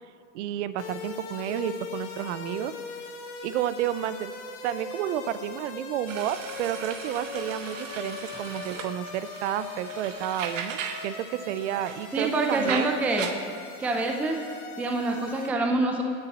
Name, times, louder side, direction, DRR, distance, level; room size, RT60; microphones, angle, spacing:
voice 1, 0.3-2.7 3.4-4.3 4.6-12.9, right 11 dB, 65° right, 14 dB, 0.5 m, -31 dB
sound 1, 0.8-15.5, left 4 dB, 70° left, 1.7 m, -40 dB
sound 2, 6.1-11.1 11.4-13.3, right 7 dB, 90° right, 0.9 m, -38 dB
voice 2, 12.1-13.3 13.8-14.4 14.8-16.0, right 2 dB, 5° right, 3 dB, 0.4 m, -26 dB
9.7 x 8.3 x 4.0 m, 2.5 s
supercardioid pair, 140°, 37 cm